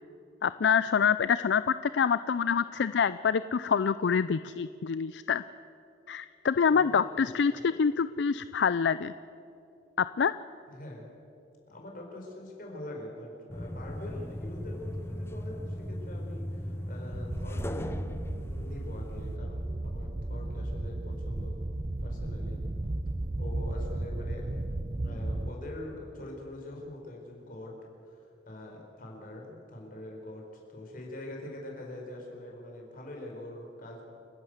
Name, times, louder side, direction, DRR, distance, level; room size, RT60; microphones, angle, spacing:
voice 1, 0.4-5.4 6.1-9.1 10.0-10.3, left 6 dB, 70° left, 14 dB, 0.4 m, -26 dB
voice 2, 6.7-7.8 10.7-11.1 11.7-18.0 18.4-21.6 22.0-22.6 23.4-24.6 25.0-27.7 28.0-28.2 28.5-30.4 30.7-34.0, left 1 dB, 50° left, -1 dB, 4.7 m, -44 dB
sound 1, 13.5-19.4, equal, 15° left, 0.6 m, -38 dB
sound 2, 17.1-25.5, right 2 dB, 30° right, 0.6 m, -34 dB
29.0 x 11.5 x 8.0 m, 2.7 s
head